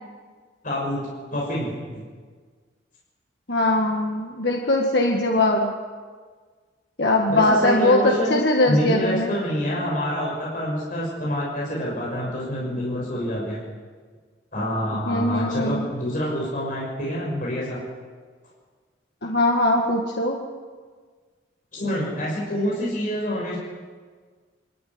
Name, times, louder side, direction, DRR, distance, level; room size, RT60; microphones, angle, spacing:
voice 1, 0.6-1.0 1.3-2.0 7.3-8.4 8.6-13.6 14.5-17.8 21.7-23.6, equal, 50° left, -4 dB, 6.3 m, -26 dB
voice 2, 3.5-5.7 7.0-9.3 15.1-15.8 19.2-20.4, left 2 dB, 65° left, 0 dB, 1.9 m, -21 dB
23.5 x 14.0 x 9.7 m, 1.5 s
head